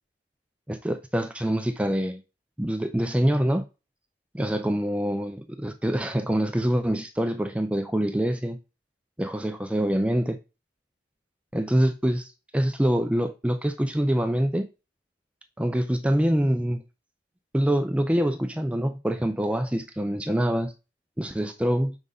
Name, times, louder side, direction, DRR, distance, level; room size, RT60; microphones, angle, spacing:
voice 1, 0.7-2.2 2.6-3.6 4.4-8.6 9.2-10.4 11.5-14.7 15.6-16.8 17.5-20.7 21.2-22.0, equal, 5° right, 0.4 m, -25 dB
4.9 x 3.9 x 5.4 m
head